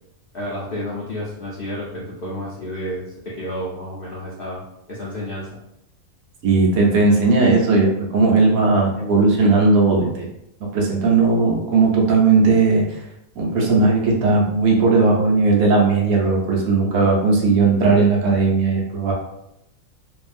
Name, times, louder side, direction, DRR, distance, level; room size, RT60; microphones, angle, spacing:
voice 1, 0.3-4.6 4.9-5.6, left 1 dB, 70° left, -5 dB, 0.5 m, -30 dB
voice 2, 6.4-10.3 10.6-13.0 13.4-19.1, right 3 dB, 75° right, -2 dB, 1.1 m, -17 dB
2.6 x 2.3 x 2.4 m, 0.82 s
omnidirectional pair, 1.5 m